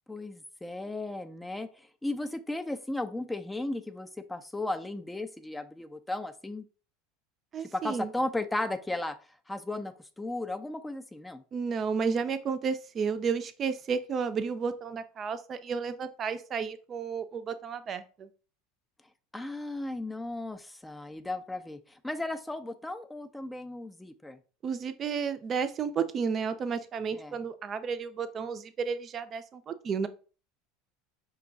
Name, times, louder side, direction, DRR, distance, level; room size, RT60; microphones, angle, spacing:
voice 1, 0.1-6.7 7.6-9.2 9.5-11.4 19.3-24.4 27.1-27.3, left 2 dB, 10° left, 8 dB, 0.5 m, -35 dB
voice 2, 7.5-8.1 11.5-18.3 24.6-30.1, right 6 dB, 35° right, 11 dB, 0.5 m, -32 dB
5.1 x 2.3 x 3.9 m, 0.37 s
hypercardioid pair, 85°, 0 cm